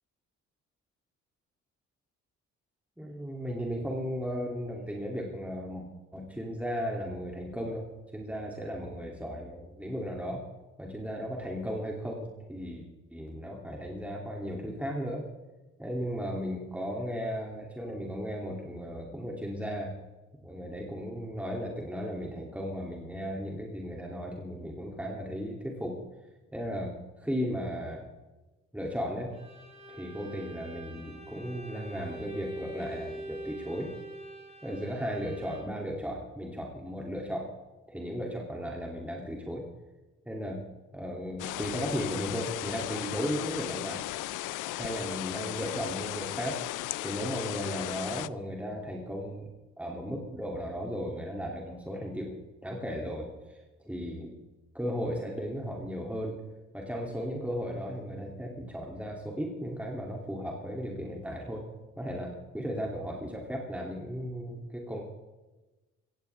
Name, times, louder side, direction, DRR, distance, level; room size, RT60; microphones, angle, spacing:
voice 1, 3.0-5.9 6.1-7.9 8.1-10.4 10.8-12.8 13.1-15.2 15.8-19.9 20.4-26.0 26.5-28.0 28.7-29.3 29.9-33.9 34.6-37.5 37.9-39.6 40.2-40.6 40.9-44.0 44.6-46.6 47.0-49.5 49.8-54.3 54.7-56.4 56.7-61.6 62.0-65.1, equal, 5° right, -1 dB, 2.9 m, -35 dB
Bowed string instrument, 29.3-35.9, right 1 dB, 20° right, 4.2 m, -44 dB
sound 1, 41.4-48.3, left 17 dB, 90° left, 0.5 m, -36 dB
17.5 x 15.5 x 3.6 m, 1.1 s
cardioid pair, 90°, 30 cm